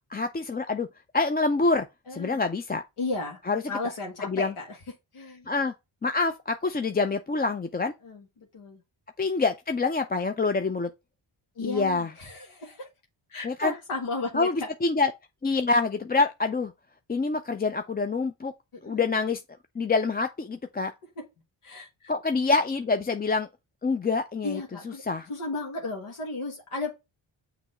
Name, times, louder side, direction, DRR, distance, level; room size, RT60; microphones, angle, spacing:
voice 1, 0.1-0.9 1.1-1.9 2.1-2.8 3.5-3.6 4.2-4.5 5.5-5.7 6.0-7.9 9.2-10.9 11.6-12.1 13.4-13.7 14.3-15.1 15.4-16.7 17.1-18.5 18.8-19.4 19.8-20.9 22.1-23.5 23.8-24.6 25.0-25.3, left 3 dB, 20° left, 0.4 m, -26 dB
voice 2, 2.1-2.4 3.0-3.4 3.7-4.8 5.1-5.5 8.0-8.8 11.5-12.9 13.3-14.7 18.8-19.1 21.2-21.3 21.6-22.1 24.4-25.0 25.3-26.9, left 3 dB, 80° left, 1.5 m, -34 dB
6.0 x 3.0 x 5.4 m
cardioid pair, 55°, 50 cm